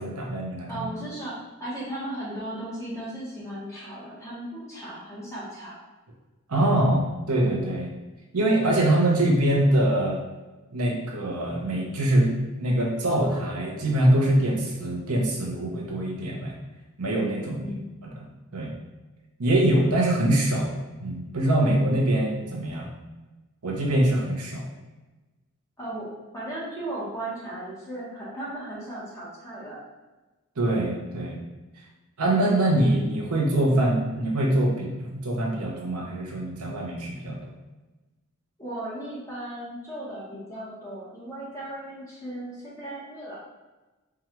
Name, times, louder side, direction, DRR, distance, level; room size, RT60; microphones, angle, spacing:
voice 1, 0.0-0.9 6.5-7.9 8.3-10.2 10.7-16.5 17.0-17.6 18.0-18.3 18.5-18.7 19.4-20.8 21.0-22.9 23.6-24.6 30.6-31.4 32.2-37.5, right 1 dB, 90° right, -2 dB, 0.9 m, -24 dB
voice 2, 0.7-5.8 17.5-17.9 25.8-26.1 26.3-29.8 38.6-43.4, right 1 dB, 15° left, -8 dB, 1.1 m, -36 dB
4.6 x 2.4 x 3.0 m, 1.2 s
head